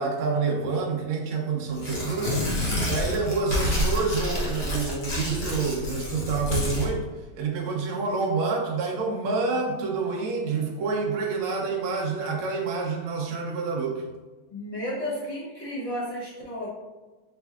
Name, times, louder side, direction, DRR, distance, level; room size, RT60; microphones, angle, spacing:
voice 1, 0.0-2.4 2.8-7.1 7.3-14.0, right 4 dB, 85° right, 0 dB, 1.5 m, -28 dB
Tearing, 1.7-6.9, left 1 dB, 45° left, 0.8 m, -28 dB
voice 2, 14.5-16.7, equal, 65° left, -8 dB, 0.3 m, -32 dB
4.9 x 3.3 x 2.3 m, 1.2 s
omnidirectional pair, 2.2 m